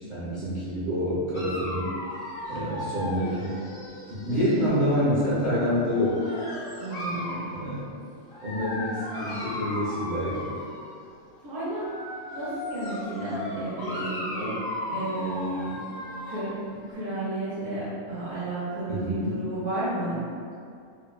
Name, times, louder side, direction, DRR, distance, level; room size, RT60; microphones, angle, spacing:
voice 1, 0.1-1.9 2.5-3.6 4.1-6.2 7.5-7.9 8.4-10.5 18.9-19.4, equal, 50° right, -11 dB, 0.6 m, -27 dB
Dog, 1.3-4.7 5.6-7.5 8.3-10.9 11.6-16.5, left 1 dB, 65° left, 1.0 m, -36 dB
voice 2, 4.3-4.7 6.8-7.5 11.4-11.9 12.3-14.6 14.9-15.9 16.3-16.6 16.9-20.2, right 2 dB, 70° right, -11 dB, 1.2 m, -32 dB
3.5 x 2.2 x 2.2 m, 2.3 s
omnidirectional pair, 1.5 m